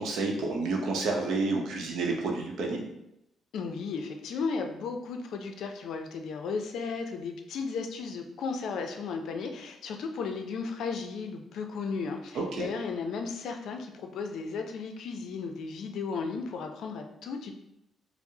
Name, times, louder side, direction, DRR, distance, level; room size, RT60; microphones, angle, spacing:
voice 1, 0.0-2.8 12.3-12.7, right 3 dB, 80° right, 1 dB, 0.7 m, -30 dB
voice 2, 3.5-17.5, left 5 dB, 75° left, 5 dB, 0.4 m, -35 dB
4.5 x 2.0 x 2.7 m, 0.84 s
cardioid pair, 90°, 0 cm